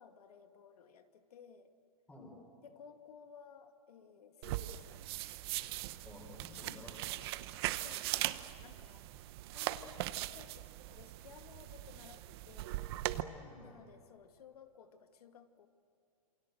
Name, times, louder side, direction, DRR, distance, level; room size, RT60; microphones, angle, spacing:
voice 1, 0.0-1.7 2.6-5.0 7.8-9.1 9.5-12.8 13.6-15.7, left 6 dB, 80° left, 7 dB, 2.2 m, -57 dB
sound 1, 4.4-13.2, right 16 dB, 40° right, 0.9 m, -40 dB
voice 2, 6.0-7.5 13.1-13.8, left 2 dB, 10° left, -1 dB, 4.1 m, -53 dB
28.0 x 24.5 x 7.9 m, 2.5 s
hypercardioid pair, 155°, 19 cm